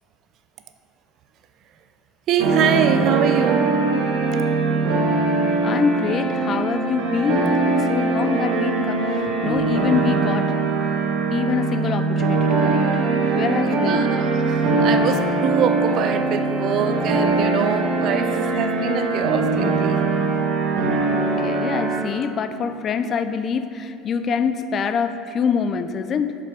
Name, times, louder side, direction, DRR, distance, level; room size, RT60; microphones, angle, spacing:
voice 1, 2.3-3.7 13.8-20.0, right 8 dB, 55° right, 8 dB, 0.5 m, -24 dB
sound 1, 2.4-22.0, right 3 dB, 80° right, 1.2 m, -21 dB
voice 2, 5.6-10.5 11.3-12.9 13.3-14.1 21.1-26.4, left 7 dB, 40° left, 10 dB, 0.4 m, -25 dB
6.6 x 5.0 x 4.7 m, 2.4 s
supercardioid pair, 105°, 0 cm